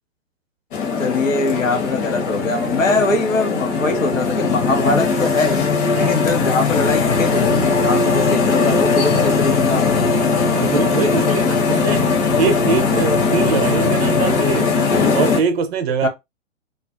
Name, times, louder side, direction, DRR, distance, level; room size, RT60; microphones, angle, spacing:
sound 1, 0.7-15.4, left 4 dB, 40° left, 0.9 m, -19 dB
voice 1, 1.0-9.9 16.0-16.1, left 3 dB, 80° left, 0.8 m, -22 dB
voice 2, 10.2-12.0 12.3-14.8 15.1-16.1, right 5 dB, 50° right, 0.6 m, -22 dB
2.4 x 2.1 x 2.4 m
figure-of-eight pair, 110°, 39 cm